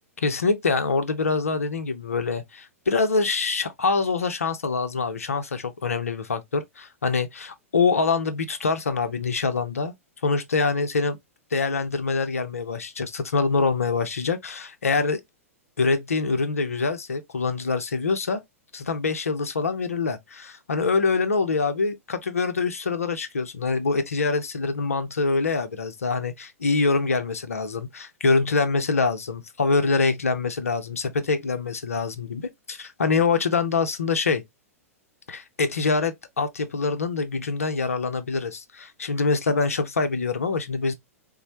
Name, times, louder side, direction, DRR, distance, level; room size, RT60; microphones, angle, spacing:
voice 1, 0.2-9.9 10.2-11.2 11.5-15.2 15.8-18.4 18.7-34.4 35.3-40.9, left 4 dB, 75° left, 0.6 m, -25 dB
4.1 x 2.1 x 2.8 m
figure-of-eight pair, 105°, 8 cm